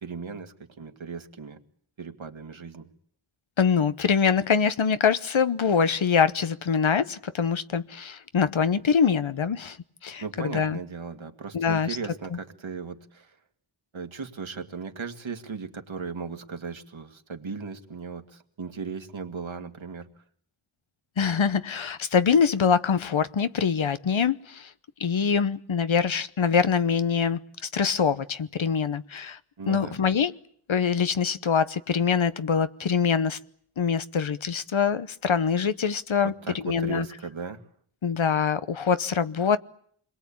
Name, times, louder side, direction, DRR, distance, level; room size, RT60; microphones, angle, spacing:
voice 1, 0.0-1.6 2.0-2.9 10.2-13.4 13.9-20.1 29.6-30.0 36.2-37.6, right 5 dB, 70° right, 2.2 m, -37 dB
voice 2, 3.6-9.8 10.0-10.8 11.5-12.0 21.2-24.7 25.0-27.4 27.7-29.4 29.7-30.3 30.7-33.4 33.8-37.1 38.0-39.6, left 6 dB, 70° left, 1.0 m, -24 dB
27.5 x 22.0 x 8.7 m
wide cardioid pair, 70°, 49 cm